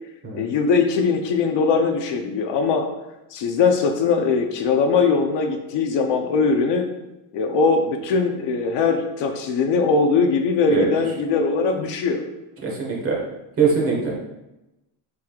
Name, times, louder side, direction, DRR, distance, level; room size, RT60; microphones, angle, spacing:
voice 1, 0.3-2.9 3.3-6.9 7.3-12.2, left 4 dB, 60° left, 4 dB, 0.8 m, -21 dB
voice 2, 12.6-13.2 13.6-14.1, right 5 dB, 25° right, -2 dB, 1.6 m, -22 dB
7.6 x 5.5 x 2.4 m, 0.96 s
cardioid pair, 155°, 49 cm